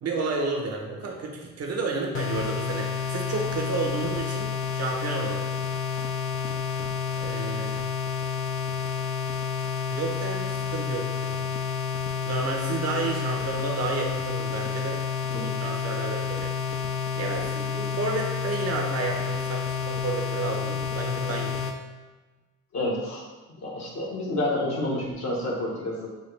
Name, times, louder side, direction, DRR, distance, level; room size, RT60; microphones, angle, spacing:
voice 1, 0.0-5.6 7.2-7.8 9.9-11.5 12.3-15.0 15.3-16.5 17.1-21.7, right 3 dB, 55° right, 1 dB, 0.8 m, -31 dB
sound 1, 2.1-21.8, left 7 dB, 45° left, 0.4 m, -30 dB
voice 2, 15.3-15.6 22.7-23.2 23.5-26.1, left 1 dB, 60° left, -4 dB, 1.2 m, -29 dB
4.6 x 2.3 x 3.2 m, 1.2 s
cardioid pair, 90°, 30 cm